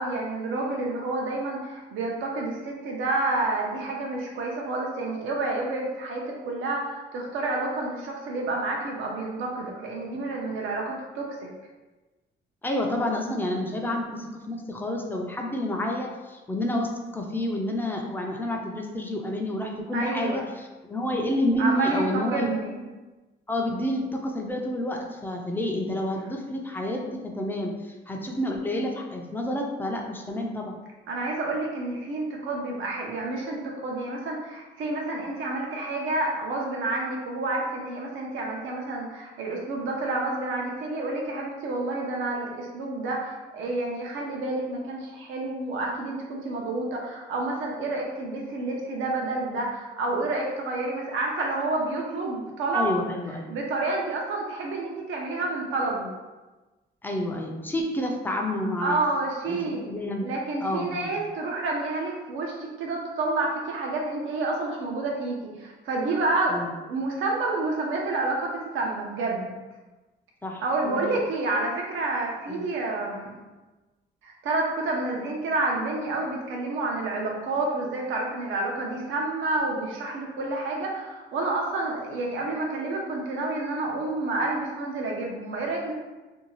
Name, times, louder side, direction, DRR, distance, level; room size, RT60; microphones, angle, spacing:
voice 1, 0.0-11.5 19.9-20.4 21.6-22.7 31.1-52.9 53.5-56.1 58.8-59.8 60.2-69.5 70.6-73.3 74.2-85.9, right 2 dB, 80° right, -1 dB, 0.7 m, -29 dB
voice 2, 12.6-22.8 23.5-30.8 52.7-53.5 57.0-59.0 59.5-60.3 60.6-61.2 66.5-66.7 70.4-71.0 72.5-72.7, left 1 dB, 10° left, 1 dB, 0.4 m, -29 dB
2.6 x 2.2 x 2.9 m, 1.2 s
cardioid pair, 90°, 20 cm